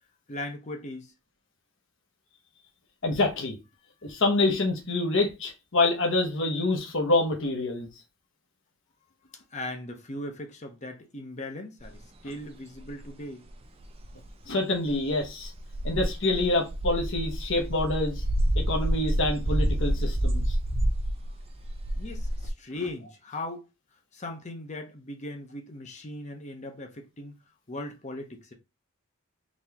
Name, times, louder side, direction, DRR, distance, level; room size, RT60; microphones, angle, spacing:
voice 1, 0.3-1.1 9.3-13.4 21.9-23.7 24.1-27.4 27.7-28.5, left 1 dB, 30° left, 0.8 m, -38 dB
voice 2, 3.0-3.6 4.0-7.9 14.5-15.5 15.8-18.2 18.5-20.6, left 2 dB, 60° left, 1.0 m, -26 dB
sound 1, 11.8-11.9 12.8-12.9 13.5-13.6 13.8-14.3 14.9-22.5, right 1 dB, 25° right, 0.5 m, -28 dB
4.2 x 3.3 x 2.9 m
head